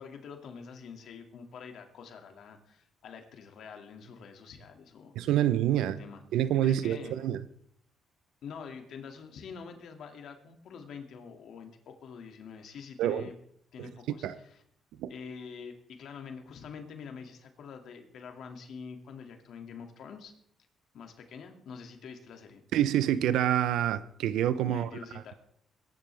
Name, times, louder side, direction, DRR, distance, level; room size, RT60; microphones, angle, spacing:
voice 1, 0.0-5.4 5.7-7.3 8.4-13.3 13.7-14.6 15.1-20.3 20.9-22.6 24.7-25.4, left 6 dB, 70° left, 2.4 m, -46 dB
voice 2, 5.2-6.0 6.3-7.4 13.0-13.3 13.8-13.9 14.2-14.3 15.0-15.1 22.7-24.9, right 11 dB, 85° right, 0.7 m, -27 dB
21.5 x 11.0 x 3.5 m
cardioid pair, 90°, 0 cm